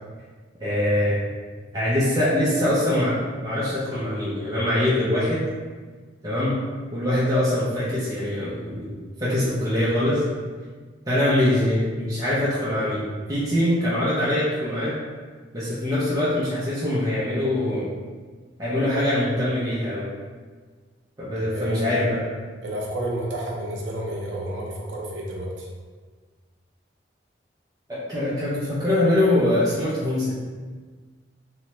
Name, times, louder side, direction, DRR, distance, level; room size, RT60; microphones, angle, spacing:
voice 1, 0.6-1.2 1.7-3.2 3.4-5.4 6.2-6.6 6.9-10.2 11.1-13.0 13.3-14.9 15.5-17.9 18.6-20.1 21.2-22.2 27.9-30.3, left 1 dB, 20° right, -10 dB, 0.6 m, -23 dB
voice 2, 21.4-21.9 22.6-25.7, right 1 dB, 80° right, -3 dB, 0.7 m, -31 dB
3.0 x 2.2 x 3.0 m, 1.5 s
head